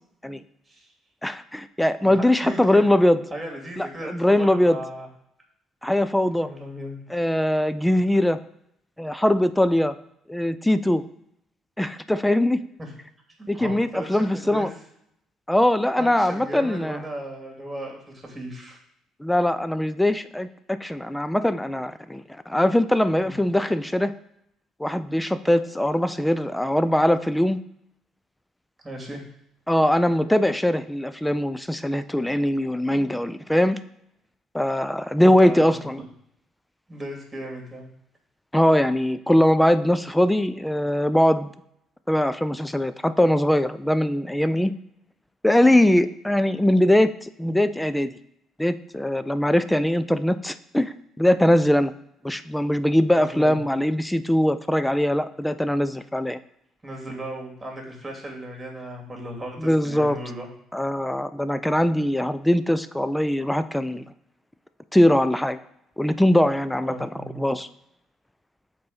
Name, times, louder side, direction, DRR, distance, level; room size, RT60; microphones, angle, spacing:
voice 1, 1.2-3.2 3.8-4.8 5.8-6.5 7.1-8.4 9.0-9.9 10.3-11.0 11.8-12.6 13.5-14.7 15.5-17.0 19.2-24.1 24.8-27.6 29.7-33.8 34.5-36.0 38.5-41.5 42.1-44.7 45.4-48.1 48.6-51.9 52.2-56.4 59.6-60.2 60.7-64.0 64.9-65.6 66.0-67.1 67.4-67.7, left 1 dB, 5° left, 13 dB, 0.4 m, -21 dB
voice 2, 2.0-2.9 3.3-5.1 6.4-7.0 12.8-12.9 13.4-14.7 16.0-18.8 23.2-23.4 28.8-29.2 35.2-35.8 36.9-37.9 53.1-53.6 56.8-60.5 66.8-67.5, right 1 dB, 15° right, 0 dB, 2.5 m, -36 dB
7.5 x 4.1 x 3.9 m, 0.76 s
figure-of-eight pair, 50°, 0 cm